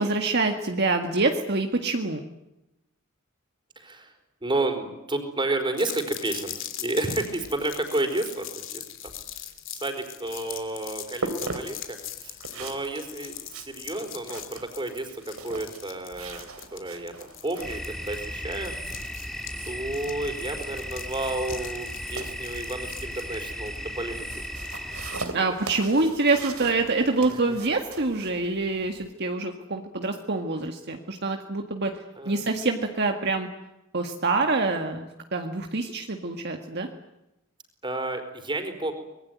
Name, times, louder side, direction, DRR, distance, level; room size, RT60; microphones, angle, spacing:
voice 1, 0.0-2.2 25.3-31.9 32.3-33.5 33.9-36.9, right 3 dB, 55° right, 4 dB, 1.8 m, -26 dB
voice 2, 3.8-4.1 4.4-9.1 9.7-18.7 19.6-24.3 25.3-25.5 25.9-26.0 27.3-27.4 32.2-32.4 37.8-38.9, right 2 dB, 25° right, 6 dB, 4.5 m, -31 dB
sound 1, 5.8-24.8, left 11 dB, 65° left, 3.3 m, -41 dB
sound 2, 10.2-29.1, right 3 dB, 80° right, 3.6 m, -41 dB
sound 3, 17.6-25.3, equal, ahead, 2.0 m, -36 dB
25.5 x 21.5 x 9.5 m, 0.92 s
head